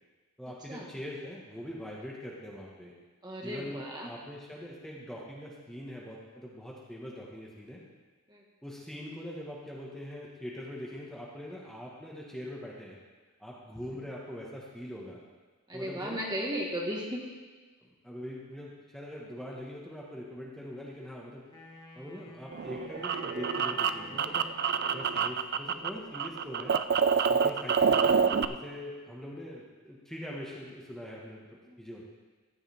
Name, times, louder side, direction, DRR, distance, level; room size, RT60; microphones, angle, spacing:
voice 1, 0.4-2.9 3.4-7.8 8.6-13.0 13.4-15.2 15.7-16.2 17.8-21.4 21.9-24.5 24.9-26.7 27.3-31.4 31.8-32.0, equal, ahead, -4 dB, 1.5 m, -42 dB
voice 2, 3.2-4.1 8.3-8.4 15.7-17.2 31.7-31.8, equal, 20° right, -2 dB, 1.6 m, -35 dB
Wind instrument woodwind instrument, 21.5-25.5, left 3 dB, 20° left, 1.6 m, -50 dB
sound 1, 22.5-25.9 26.1-28.5, right 6 dB, 50° right, 0.4 m, -27 dB
15.0 x 10.5 x 3.5 m, 1.3 s
head